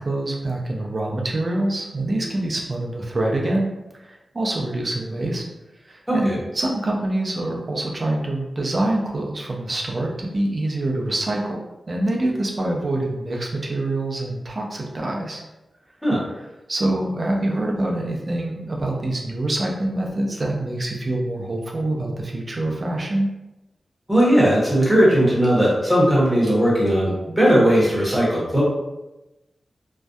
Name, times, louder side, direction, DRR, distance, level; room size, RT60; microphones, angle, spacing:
voice 1, 0.0-5.4 5.9-6.3 6.5-11.6 11.9-15.4 16.7-23.3, right 1 dB, 40° right, -1 dB, 0.4 m, -25 dB
voice 2, 6.1-6.4 16.0-16.2 24.1-28.6, equal, ahead, -6 dB, 0.8 m, -18 dB
2.6 x 2.1 x 2.3 m, 1.0 s
wide cardioid pair, 140°, 0 cm